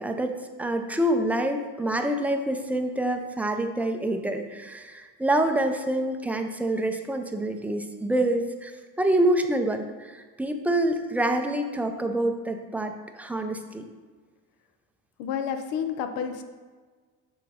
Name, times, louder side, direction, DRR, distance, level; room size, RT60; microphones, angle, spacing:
voice 1, 0.0-8.7 9.0-13.9, right 1 dB, 5° right, 5 dB, 0.5 m, -26 dB
voice 2, 15.2-16.4, left 7 dB, 75° left, 8 dB, 0.8 m, -30 dB
6.7 x 4.0 x 5.0 m, 1.4 s
supercardioid pair, 105°, 35 cm